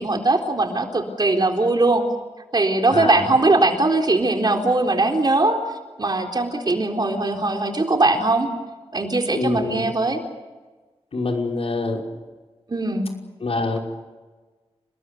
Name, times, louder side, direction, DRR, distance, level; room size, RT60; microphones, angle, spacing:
voice 1, 0.0-2.0 2.5-5.6 6.0-8.5 8.9-10.2 12.7-13.1, right 2 dB, 40° right, 2 dB, 4.0 m, -20 dB
voice 2, 2.9-3.2 9.3-9.9 11.1-12.0 13.4-13.8, left 3 dB, 65° left, 1 dB, 5.6 m, -25 dB
30.0 x 21.0 x 6.9 m, 1.3 s
wide cardioid pair, 90°, 11 cm